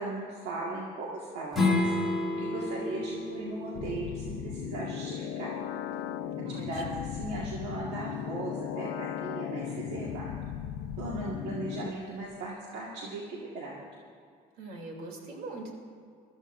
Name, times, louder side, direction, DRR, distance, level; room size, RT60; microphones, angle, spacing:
voice 1, 0.0-1.9 2.4-5.6 6.6-10.3 11.0-13.8, right 2 dB, 80° right, -4 dB, 1.8 m, -38 dB
Strum, 1.5-6.7, left 2 dB, ahead, 3.0 m, -32 dB
sound 1, 3.7-11.9, left 9 dB, 75° left, 0.6 m, -37 dB
voice 2, 6.4-7.1 14.6-15.7, right 2 dB, 65° right, 0 dB, 3.0 m, -42 dB
22.0 x 13.5 x 2.6 m, 2.2 s
cardioid pair, 110°, 17 cm